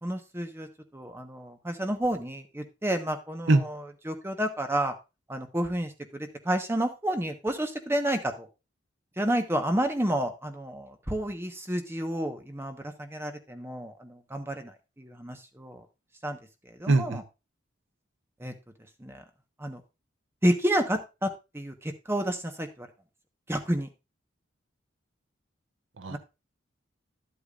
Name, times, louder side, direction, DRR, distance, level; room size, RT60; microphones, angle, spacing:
voice 1, 0.0-0.7 0.9-4.9 5.3-5.9 6.2-8.5 9.2-15.8 16.2-16.4 16.8-17.2 18.4-18.5 19.0-19.2 19.6-19.8 20.4-22.9 23.5-23.9 26.1-26.2, right 1 dB, 15° right, 6 dB, 1.1 m, -30 dB
voice 2, 16.9-17.2 26.0-26.2, right 2 dB, 80° right, 8 dB, 0.9 m, -22 dB
11.5 x 8.5 x 2.5 m, 0.26 s
head